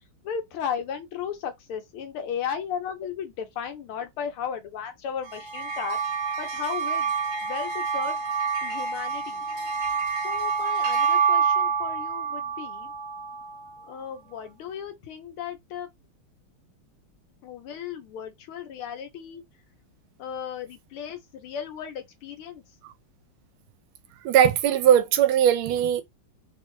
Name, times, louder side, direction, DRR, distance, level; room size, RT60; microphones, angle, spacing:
voice 1, 0.2-6.0 6.4-7.1 7.4-8.2 8.6-9.5 10.1-12.9 13.9-15.9 17.4-19.4 20.2-22.6, left 8 dB, 85° left, 1.8 m, -35 dB
sound 1, 5.3-13.9, right 5 dB, 65° right, 1.4 m, -27 dB
voice 2, 24.2-26.0, right 9 dB, 80° right, 1.4 m, -19 dB
3.9 x 2.2 x 3.0 m
omnidirectional pair, 2.3 m